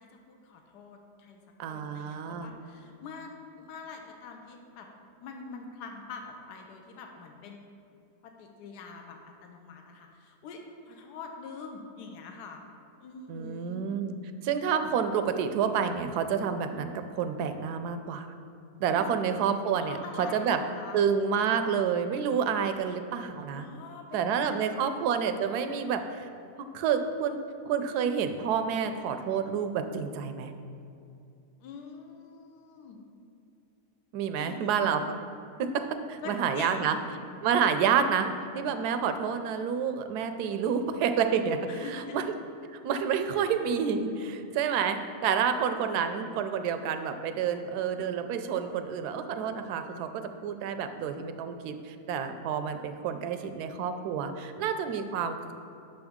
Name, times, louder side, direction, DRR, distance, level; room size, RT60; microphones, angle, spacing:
voice 1, 0.0-1.4 1.7-3.3 3.6-4.9 5.2-7.6 8.2-12.6 13.0-13.9 18.8-19.2 19.8-21.0 23.6-25.0 31.6-33.0 34.4-34.8 36.2-36.9 41.7-42.2 43.3-43.5, left 4 dB, 75° left, 3 dB, 1.3 m, -45 dB
voice 2, 1.6-2.5 13.3-14.1 14.4-18.3 18.8-20.6 20.9-23.7 24.1-26.3 26.7-27.4 27.6-30.5 34.1-35.0 35.6-37.0 37.4-38.3 38.5-42.2 42.7-55.5, right 7 dB, 75° right, 8 dB, 1.1 m, -29 dB
8.8 x 6.5 x 3.6 m, 2.5 s
omnidirectional pair, 1.8 m